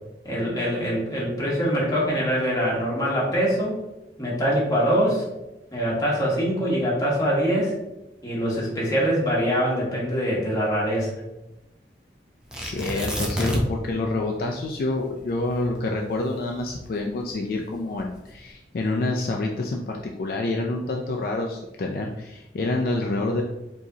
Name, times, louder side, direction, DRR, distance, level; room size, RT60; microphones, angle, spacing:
voice 1, 0.2-3.8 4.2-5.2 5.7-7.7 8.2-11.1, equal, 20° left, -6 dB, 1.2 m, -23 dB
Tearing, 12.5-13.9 14.2-14.3 14.8-17.2 17.9-18.4, equal, 5° right, 0.5 m, -29 dB
voice 2, 12.6-23.4, left 2 dB, 55° left, 0 dB, 0.3 m, -27 dB
4.8 x 2.8 x 2.7 m, 0.97 s
head